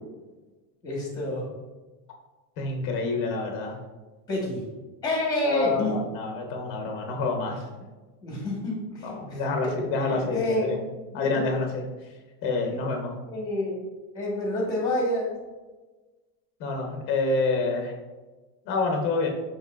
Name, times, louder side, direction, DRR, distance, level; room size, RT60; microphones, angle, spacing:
voice 1, 0.8-1.4 4.3-4.7 5.0-6.0 8.2-9.4 9.7-10.8 11.1-11.4 12.7-12.9 13.3-13.8 14.1-15.3, left 1 dB, 10° left, -2 dB, 0.9 m, -28 dB
voice 2, 2.6-3.8 5.4-7.6 9.0-10.8 11.1-11.8 12.4-13.2 16.6-17.9 18.7-19.3, left 3 dB, 25° left, 2 dB, 0.5 m, -27 dB
7.1 x 3.2 x 2.3 m, 1.2 s
cardioid pair, 175°, 48 cm